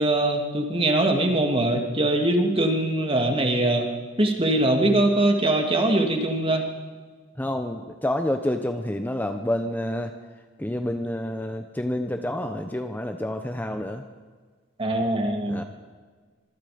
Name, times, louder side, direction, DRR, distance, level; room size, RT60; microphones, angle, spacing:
voice 1, 0.0-3.9 4.2-6.7 14.8-15.6, right 1 dB, 30° right, 3 dB, 2.6 m, -22 dB
voice 2, 7.4-10.1 10.6-14.0 15.5-15.6, left 1 dB, 10° left, 6 dB, 0.9 m, -28 dB
25.0 x 23.5 x 5.2 m, 1.5 s
head